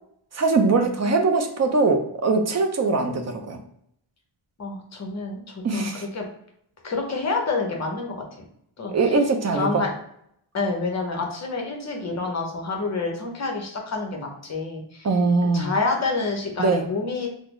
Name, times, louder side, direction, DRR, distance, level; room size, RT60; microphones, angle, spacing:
voice 1, 0.3-3.6 5.6-6.0 8.9-9.8 15.0-15.7 16.6-16.8, right 3 dB, 35° right, 5 dB, 0.4 m, -21 dB
voice 2, 4.6-6.3 6.8-8.5 8.8-9.1 9.5-9.9 10.5-15.1 15.5-17.3, left 3 dB, 35° left, 1 dB, 0.6 m, -28 dB
3.7 x 2.0 x 3.0 m, 0.73 s
wide cardioid pair, 155°, 47 cm